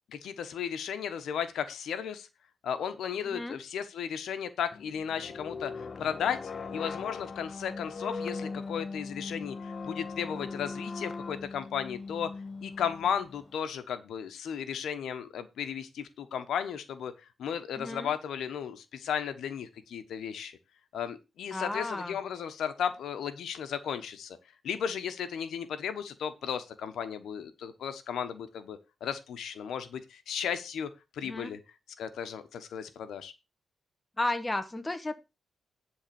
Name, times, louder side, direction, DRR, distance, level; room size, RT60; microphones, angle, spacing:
voice 1, 0.1-2.3 2.6-6.4 6.7-12.3 12.6-17.1 17.4-20.6 20.9-24.4 24.6-31.6 32.0-33.3, left 8 dB, 80° left, 10 dB, 1.2 m, -35 dB
voice 2, 3.2-3.6 17.8-18.1 21.5-22.2 31.2-31.5 34.2-35.2, left 2 dB, 15° left, 8 dB, 1.2 m, -33 dB
sound 1, 4.7-13.5, left 4 dB, 35° left, 0.6 m, -40 dB
10.5 x 3.9 x 7.1 m, 0.26 s
cardioid pair, 125°, 0 cm